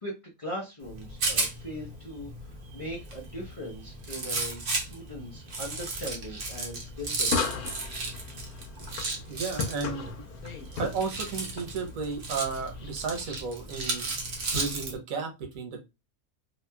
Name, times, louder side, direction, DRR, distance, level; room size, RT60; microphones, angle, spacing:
voice 1, 0.4-7.7, equal, 40° left, -3 dB, 0.5 m, -40 dB
Rattle, 0.8-15.0, right 3 dB, 50° right, 0.7 m, -35 dB
sound 1, 7.2-13.2, left 5 dB, 85° left, 1.2 m, -37 dB
voice 2, 9.3-10.2 10.7-14.1 14.5-15.8, right 5 dB, 70° right, 4 dB, 1.2 m, -33 dB
2.8 x 2.8 x 2.2 m, 0.24 s
omnidirectional pair, 1.6 m